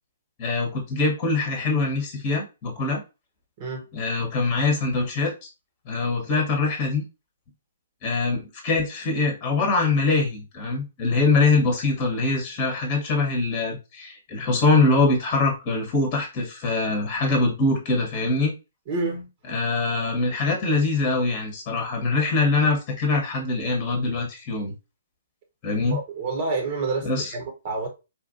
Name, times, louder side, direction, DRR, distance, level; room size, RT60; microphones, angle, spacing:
voice 1, 0.4-3.0 3.9-5.5 5.9-7.0 8.0-18.5 19.5-24.7 25.6-26.0 27.0-27.3, left 3 dB, 30° left, 1.1 m, -23 dB
voice 2, 18.9-19.3 25.9-27.9, right 3 dB, 40° right, 1.2 m, -28 dB
4.2 x 2.5 x 2.6 m
figure-of-eight pair, 130°, 0 cm